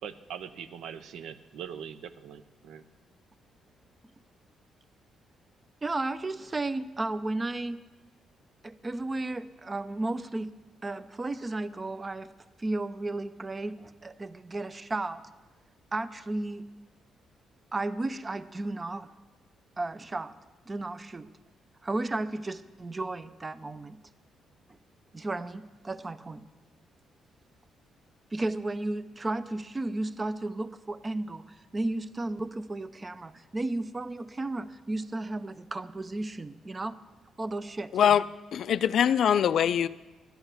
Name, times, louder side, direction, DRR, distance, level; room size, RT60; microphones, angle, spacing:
voice 1, 0.0-2.8, right 8 dB, 80° right, 0.6 m, -42 dB
voice 2, 5.8-7.8 8.6-10.5 10.8-12.3 12.6-15.2 15.9-16.7 17.7-19.1 19.8-20.3 20.7-21.3 21.8-24.0 25.1-26.5 28.3-37.0 37.4-38.2, right 2 dB, 25° right, 0.5 m, -34 dB
voice 3, 38.5-39.9, left 9 dB, 65° left, 0.3 m, -23 dB
11.5 x 8.0 x 6.6 m
cardioid pair, 90°, 0 cm